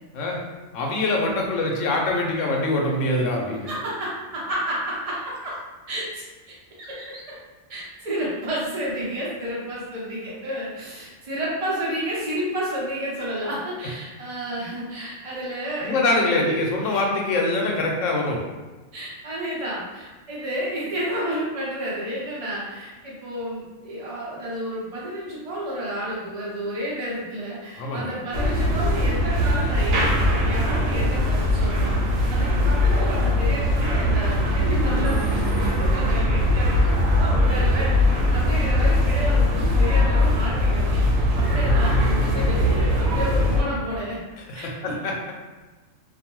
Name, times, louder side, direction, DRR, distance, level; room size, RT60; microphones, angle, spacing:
voice 1, 0.7-3.7 15.8-18.4 27.8-28.2 44.5-45.3, left 2 dB, 75° left, -1 dB, 0.9 m, -24 dB
voice 2, 3.7-5.6 5.9-6.2 6.8-7.2 7.7-17.0 18.9-32.0 32.3-37.9 38.3-44.2 44.5-45.0, equal, 35° right, -6 dB, 0.7 m, -31 dB
sound 1, 28.3-43.6, left 1 dB, 80° right, 1.0 m, -21 dB
2.5 x 2.1 x 2.9 m, 1.2 s
omnidirectional pair, 1.4 m